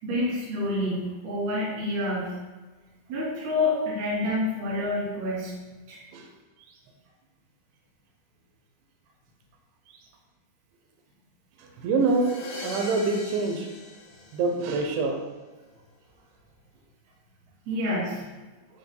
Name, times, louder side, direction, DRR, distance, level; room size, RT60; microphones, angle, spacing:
voice 1, 0.0-2.3 3.1-5.5 5.9-6.0 17.7-18.3, left 1 dB, 65° right, -7 dB, 4.8 m, -28 dB
voice 2, 11.8-12.3 12.6-13.7 14.3-15.2, right 3 dB, 90° right, 2 dB, 3.4 m, -25 dB
sound 1, 12.0-15.0, left 2 dB, 60° left, 4.2 m, -41 dB
14.5 x 8.0 x 2.2 m, 1.3 s
omnidirectional pair, 5.2 m